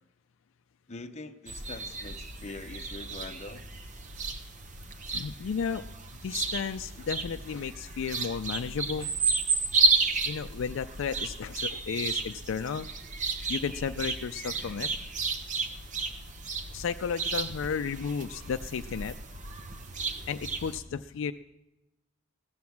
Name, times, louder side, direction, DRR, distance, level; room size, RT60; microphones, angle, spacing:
voice 1, 0.9-3.6, left 2 dB, 35° left, 7 dB, 0.7 m, -43 dB
sound 1, 1.5-20.8, right 3 dB, 35° right, 0.8 m, -32 dB
voice 2, 5.1-5.8 6.2-9.1 10.3-12.9 13.5-14.9 16.7-19.1 20.3-21.3, left 6 dB, 65° left, 9 dB, 0.4 m, -33 dB
15.5 x 7.8 x 7.1 m, 0.95 s
head